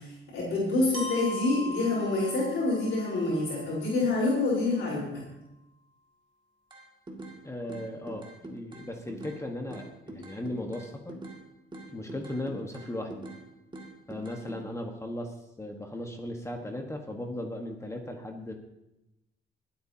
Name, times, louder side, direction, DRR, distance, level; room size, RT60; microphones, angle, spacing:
voice 1, 0.0-5.2, left 2 dB, 70° left, -5 dB, 4.4 m, -27 dB
Glockenspiel, 0.9-4.9, left 1 dB, 30° left, 3.3 m, -41 dB
sound 1, 6.7-7.4 7.7-9.4 9.7-11.4 11.7-13.4 13.7-14.6, right 2 dB, 25° right, 2.2 m, -44 dB
voice 2, 7.4-11.2 11.9-13.2 14.1-18.5, left 1 dB, 15° left, 3 dB, 1.4 m, -37 dB
23.5 x 8.6 x 2.9 m, 0.91 s
cardioid pair, 90°, 20 cm